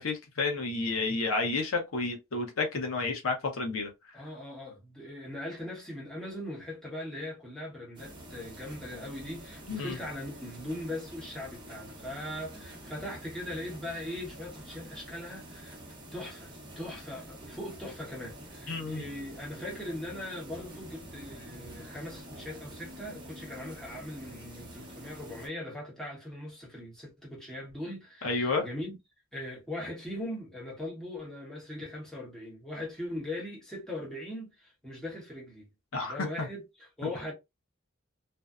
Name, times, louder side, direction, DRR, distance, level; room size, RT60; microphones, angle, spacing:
voice 1, 0.0-3.9 9.7-10.0 18.7-19.0 28.2-28.7 35.9-36.5, left 3 dB, 85° left, 0.7 m, -31 dB
voice 2, 4.1-15.8 16.1-29.0 29.3-35.7 36.0-37.3, left 1 dB, 5° left, 1.0 m, -40 dB
sound 1, 7.9-25.5, right 1 dB, 20° right, 0.7 m, -47 dB
2.6 x 2.1 x 2.3 m
head